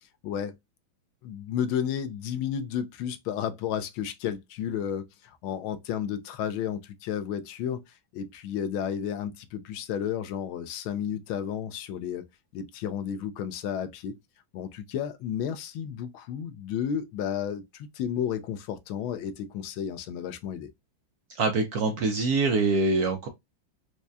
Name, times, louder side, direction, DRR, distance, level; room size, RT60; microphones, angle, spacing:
voice 1, 0.2-0.5 1.2-7.8 8.1-12.2 12.5-14.2 14.5-20.7, left 9 dB, 85° left, 1.5 m, -32 dB
voice 2, 21.3-23.3, right 3 dB, 70° right, 0.9 m, -24 dB
4.7 x 2.2 x 2.5 m
omnidirectional pair, 2.2 m